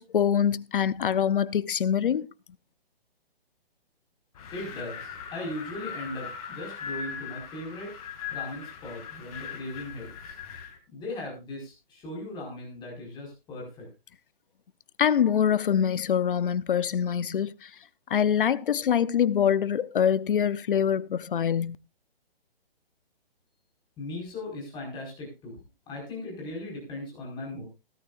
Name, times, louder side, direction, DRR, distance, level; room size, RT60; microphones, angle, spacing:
voice 1, 0.0-2.3 15.0-17.7 18.1-21.8, left 8 dB, 55° left, 0.8 m, -24 dB
Wind, 4.3-10.8, left 7 dB, 35° left, 2.6 m, -40 dB
voice 2, 4.5-7.9 8.3-10.3 10.9-13.9 24.0-25.5 25.9-27.7, left 2 dB, 15° left, 5.1 m, -38 dB
17.0 x 13.0 x 2.5 m
hypercardioid pair, 155°, 31 cm